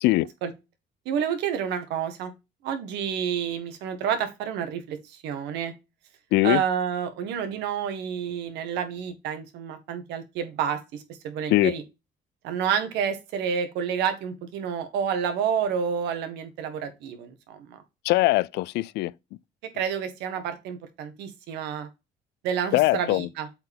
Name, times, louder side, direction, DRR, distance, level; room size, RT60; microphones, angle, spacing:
voice 1, 1.0-2.3 2.6-5.7 6.4-11.8 12.4-17.8 19.7-21.9 22.4-23.5, right 8 dB, 85° right, 1.6 m, -29 dB
voice 2, 6.3-6.6 11.5-11.7 18.0-19.1 22.7-23.3, left 18 dB, 85° left, 0.4 m, -21 dB
7.9 x 4.4 x 3.5 m
cardioid pair, 110°, 17 cm